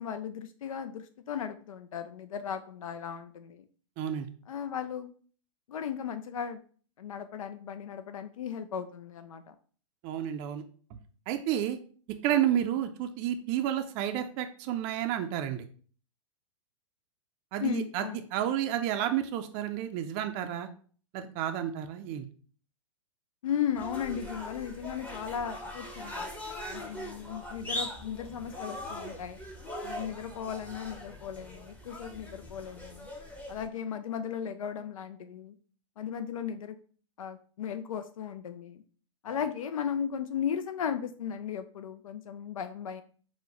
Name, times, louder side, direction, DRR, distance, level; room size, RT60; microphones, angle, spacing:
voice 1, 0.0-3.6 4.5-5.1 5.7-6.6 7.0-9.6 17.6-18.3 23.4-26.3 26.7-29.4 29.8-33.1 33.5-35.5 36.0-36.8 37.2-38.8 39.2-43.0, left 8 dB, 80° left, 9 dB, 0.4 m, -36 dB
voice 2, 4.0-4.3 10.0-10.6 10.9-11.0 11.3-11.8 12.2-15.7 17.5-20.7 21.1-22.3, right 11 dB, 35° right, 6 dB, 0.4 m, -31 dB
sound 1, 23.7-33.6, left 1 dB, 10° left, 0.8 m, -41 dB
4.4 x 2.1 x 4.1 m, 0.43 s
hypercardioid pair, 115°, 17 cm